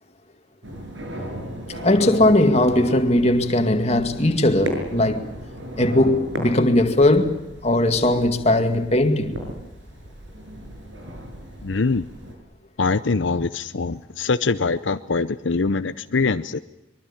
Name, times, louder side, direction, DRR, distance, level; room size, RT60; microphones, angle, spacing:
sound 1, 0.6-12.3, equal, 90° right, 6.9 m, -35 dB
voice 1, 1.8-5.3 5.8-9.4, left 1 dB, 35° left, 2.3 m, -19 dB
voice 2, 11.6-12.1 12.8-16.6, left 4 dB, 80° left, 0.7 m, -23 dB
24.5 x 23.0 x 7.3 m
head